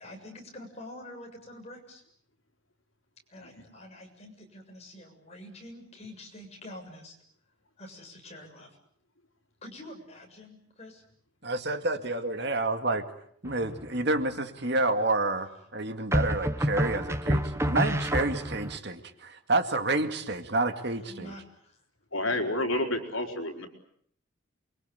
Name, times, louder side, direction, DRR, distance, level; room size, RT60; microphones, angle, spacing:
voice 1, 0.0-2.0 3.3-7.2 7.8-8.8 9.6-11.0 21.0-21.8, left 1 dB, 30° left, 2 dB, 7.2 m, -46 dB
voice 2, 11.4-13.1 13.4-21.3, right 2 dB, 55° right, 7 dB, 2.2 m, -29 dB
sound 1, 13.5-14.0 16.1-18.8, equal, 15° right, 1.2 m, -28 dB
voice 3, 22.1-23.7, left 1 dB, 75° left, 5 dB, 4.4 m, -29 dB
28.5 x 23.0 x 8.3 m, 0.66 s
head